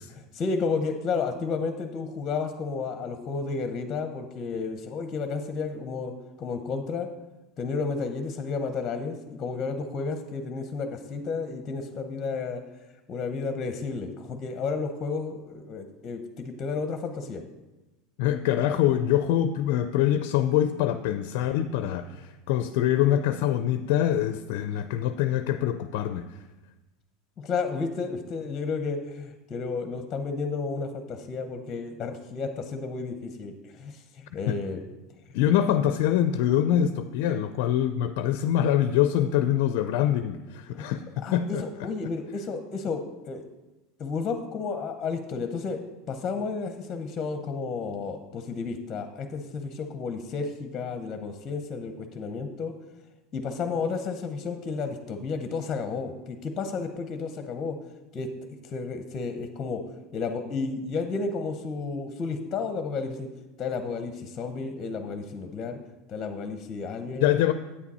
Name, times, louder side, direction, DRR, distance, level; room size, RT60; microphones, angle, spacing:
voice 1, 0.1-7.1 7.6-12.6 13.1-17.4 27.4-34.8 35.3-35.4 40.7-40.9 41.2-43.4 44.0-45.8 46.1-52.7 53.3-57.8 58.1-58.3 58.6-59.8 60.1-63.3 63.6-65.8 66.1-67.3, left 4 dB, 30° left, 7 dB, 0.7 m, -32 dB
voice 2, 18.2-26.3 34.5-34.6 35.3-41.9 67.2-67.5, left 11 dB, 70° left, 10 dB, 0.4 m, -24 dB
8.6 x 7.2 x 4.2 m, 1.1 s
supercardioid pair, 125°, 0 cm